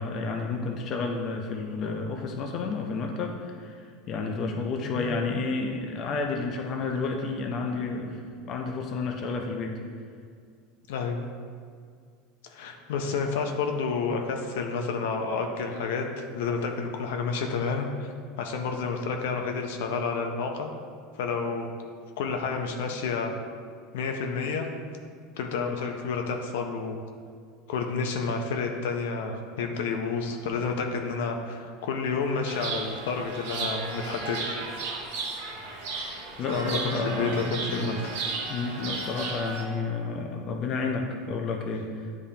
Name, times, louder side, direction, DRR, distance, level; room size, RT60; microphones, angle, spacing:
voice 1, 0.0-3.3 3.6-3.8 4.1-9.8 36.4-37.9 38.5-42.2, left 4 dB, 35° left, 2 dB, 0.5 m, -31 dB
voice 2, 10.9-11.2 12.4-18.1 18.4-20.7 21.1-21.7 22.2-23.3 23.9-24.7 25.4-27.0 27.7-34.8 36.5-38.3, left 4 dB, 80° left, 4 dB, 0.7 m, -30 dB
Chirp tweet, 32.4-39.6, right 3 dB, 75° right, 1.1 m, -34 dB
10.0 x 3.6 x 2.8 m, 2.1 s
supercardioid pair, 155°, 0 cm